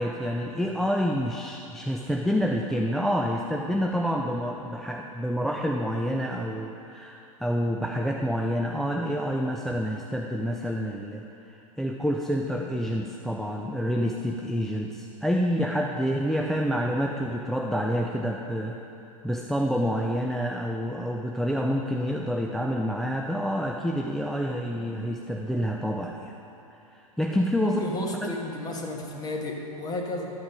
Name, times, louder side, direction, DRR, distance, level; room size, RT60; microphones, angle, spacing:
voice 1, 0.0-18.8 19.2-26.4 27.2-27.8 28.2-28.4, equal, ahead, 0 dB, 0.4 m, -28 dB
voice 2, 27.6-30.3, left 2 dB, 20° left, 1 dB, 1.3 m, -33 dB
11.5 x 6.0 x 5.2 m, 2.9 s
figure-of-eight pair, 100°, 19 cm